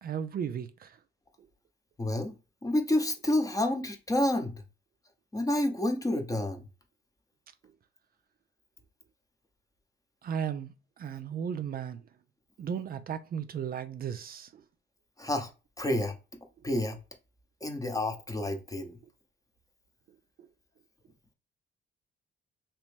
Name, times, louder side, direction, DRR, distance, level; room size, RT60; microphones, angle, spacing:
voice 1, 0.0-1.0 10.2-12.0 12.6-14.5, right 8 dB, 50° right, 0.4 m, -35 dB
voice 2, 2.0-2.3 2.6-4.6 5.3-6.6 15.2-15.5 15.8-16.1 16.6-17.0 17.6-19.0, left 1 dB, 15° left, 0.8 m, -29 dB
2.9 x 2.9 x 3.3 m
cardioid pair, 90°, 20 cm